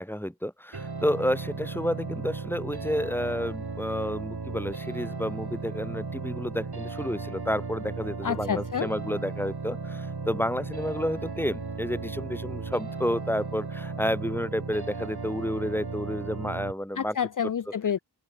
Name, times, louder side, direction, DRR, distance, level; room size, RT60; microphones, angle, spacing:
voice 1, 0.0-17.2, equal, 5° left, 5.9 m, -30 dB
sound 1, 0.7-16.7, right 4 dB, 70° right, 7.4 m, -36 dB
voice 2, 8.2-8.9 17.0-18.0, left 8 dB, 50° left, 0.6 m, -28 dB
wide cardioid pair, 65°, 40 cm